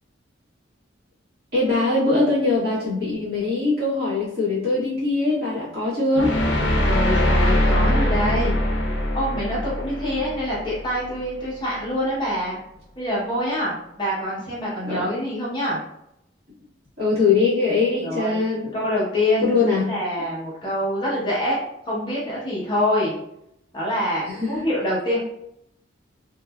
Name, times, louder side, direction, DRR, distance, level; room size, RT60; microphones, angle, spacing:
voice 1, 1.5-6.3 14.8-15.0 17.0-18.7 19.4-19.8 24.3-24.6, left 3 dB, 55° right, -9 dB, 1.4 m, -22 dB
sound 1, 6.1-11.2, left 1 dB, 65° left, 0.5 m, -22 dB
voice 2, 6.9-8.6 9.1-12.6 13.0-15.8 18.0-18.4 18.7-23.1 23.7-25.2, left 1 dB, 25° left, -7 dB, 0.7 m, -25 dB
2.7 x 2.5 x 2.2 m, 0.78 s
head